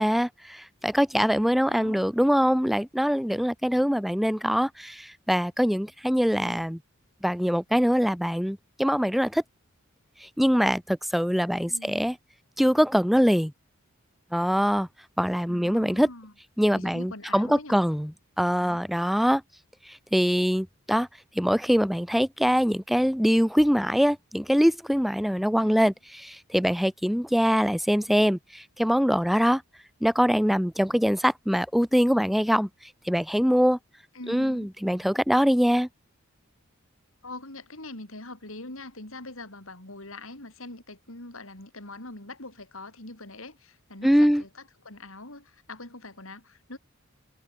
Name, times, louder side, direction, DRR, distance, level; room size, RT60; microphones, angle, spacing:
voice 1, 0.0-6.8 7.2-9.4 10.2-12.2 12.6-13.5 14.3-14.9 15.2-16.1 16.6-18.1 18.4-19.4 19.9-21.1 21.4-25.9 26.2-29.6 30.0-32.7 33.1-33.8 34.3-35.9 44.0-44.4, equal, ahead, 0.6 m, -23 dB
voice 2, 1.7-2.1 11.6-12.1 15.5-16.3 16.7-17.8 18.6-18.8 25.6-25.9 34.1-34.7 37.2-46.8, left 2 dB, 65° left, 4.7 m, -43 dB
head